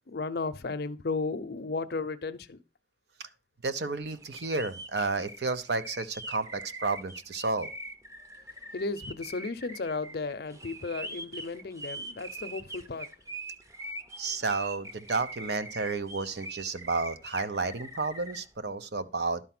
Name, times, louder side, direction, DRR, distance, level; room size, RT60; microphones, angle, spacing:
voice 1, 0.1-2.6 8.7-13.1, left 3 dB, 60° left, 0.6 m, -34 dB
voice 2, 3.6-7.7 14.2-19.4, right 3 dB, 65° right, 0.8 m, -31 dB
sound 1, 4.2-18.4, right 2 dB, 15° right, 0.7 m, -42 dB
11.5 x 4.5 x 5.9 m
head